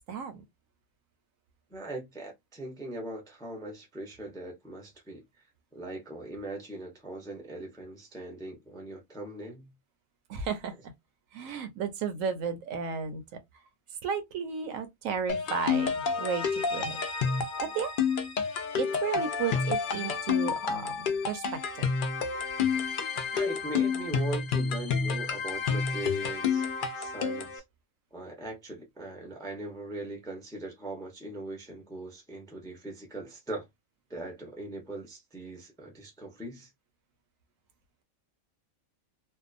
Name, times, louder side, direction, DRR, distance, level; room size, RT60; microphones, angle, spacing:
voice 1, 0.1-0.4 10.3-10.7 11.3-13.2 14.0-17.0 17.6-17.9 18.8-21.9, right 6 dB, 75° right, 1.0 m, -33 dB
voice 2, 1.7-5.2 5.7-9.7 23.3-26.7 26.9-27.6 28.1-33.7 34.1-36.7, right 2 dB, 5° left, 0.4 m, -40 dB
sound 1, 15.3-27.6, left 5 dB, 75° left, 0.4 m, -29 dB
2.6 x 2.2 x 2.4 m
omnidirectional pair, 1.4 m